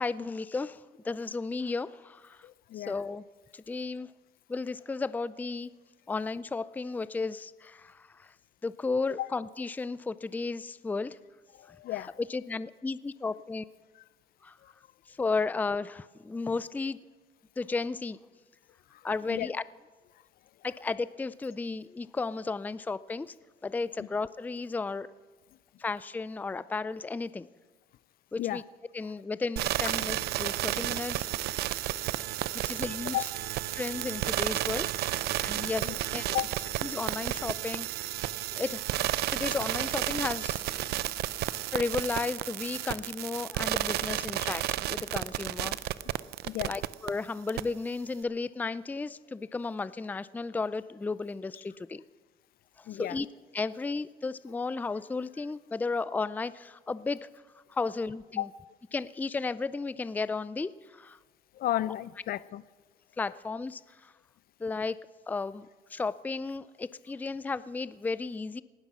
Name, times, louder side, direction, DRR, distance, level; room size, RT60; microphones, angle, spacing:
voice 1, 0.0-2.5 2.8-3.2 3.5-4.1 4.5-5.7 6.1-8.3 8.6-11.2 11.7-13.7 14.4-14.5 15.1-17.0 17.6-18.2 19.0-19.6 20.6-23.3 23.6-25.1 25.8-27.5 28.3-28.6 28.9-31.2 32.7-33.3 33.7-36.3 36.8-38.1 38.5-38.8 39.3-40.6 41.5-45.8 46.6-52.0 52.8-53.3 53.5-57.3 57.7-58.5 58.9-61.2 63.2-64.1 64.6-65.0 65.3-68.6, left 4 dB, 10° left, 0.4 m, -34 dB
voice 2, 2.4-2.9 9.2-9.3 11.6-12.1 19.3-19.5 28.4-28.6 33.1-33.3 35.8-36.0 36.3-36.5 46.5-46.7 52.9-53.2 58.4-58.5 61.6-62.6, left 14 dB, 60° left, 0.5 m, -32 dB
sound 1, 29.6-47.1 47.5-47.6, right 15 dB, 75° right, 0.5 m, -32 dB
18.5 x 12.5 x 6.1 m
cardioid pair, 110°, 17 cm